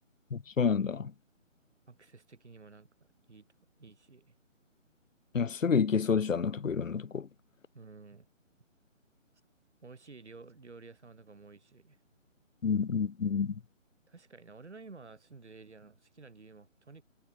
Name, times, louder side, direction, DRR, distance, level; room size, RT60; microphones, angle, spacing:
voice 1, 0.3-1.1 5.3-7.3 12.6-13.6, left 6 dB, 75° left, 1.1 m, -29 dB
voice 2, 1.9-3.5 3.8-4.3 7.7-8.3 9.8-12.0 14.1-17.0, right 4 dB, 60° right, 6.4 m, -52 dB
hypercardioid pair, 180°, 39 cm